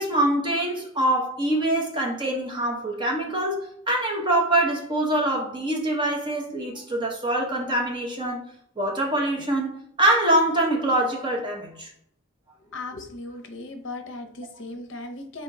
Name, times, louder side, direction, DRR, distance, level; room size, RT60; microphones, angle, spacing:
voice 1, 0.0-8.5 8.8-11.9, right 1 dB, 20° right, 0.7 m, -24 dB
voice 2, 12.7-15.4, left 2 dB, 55° left, 0.7 m, -37 dB
4.1 x 2.9 x 3.5 m
head